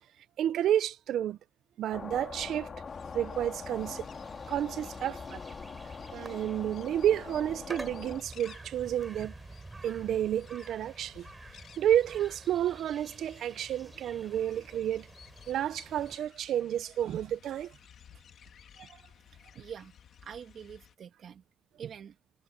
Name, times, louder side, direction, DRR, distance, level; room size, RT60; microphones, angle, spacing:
voice 1, 0.4-1.4 1.8-2.7 3.1-4.1 4.5-5.4 6.1-9.3 9.8-11.3 11.8-15.1 15.5-17.7 18.8-18.9, right 10 dB, 85° right, 0.6 m, -30 dB
sound 1, 1.9-8.2, left 5 dB, 35° left, 2.0 m, -43 dB
sound 2, 2.9-20.9, left 8 dB, 60° left, 2.1 m, -56 dB
sound 3, 3.7-16.2, right 3 dB, 20° right, 5.2 m, -49 dB
voice 2, 19.3-19.9 20.2-21.4 21.8-22.2, right 8 dB, 55° right, 2.2 m, -45 dB
cardioid pair, 155°, 0 cm